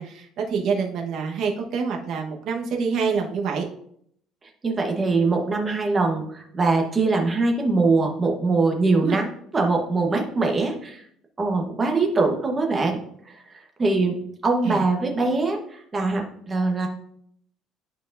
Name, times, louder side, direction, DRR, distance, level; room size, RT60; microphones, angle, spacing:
voice 1, 0.0-3.6 8.9-9.2 14.6-14.8, right 5 dB, 55° right, 1 dB, 1.2 m, -26 dB
voice 2, 4.6-9.3 9.5-11.0 11.4-13.0 13.3-13.4 13.8-16.9, right 3 dB, 20° right, 2 dB, 1.1 m, -22 dB
11.0 x 4.6 x 2.6 m, 0.68 s
cardioid pair, 150°, 0 cm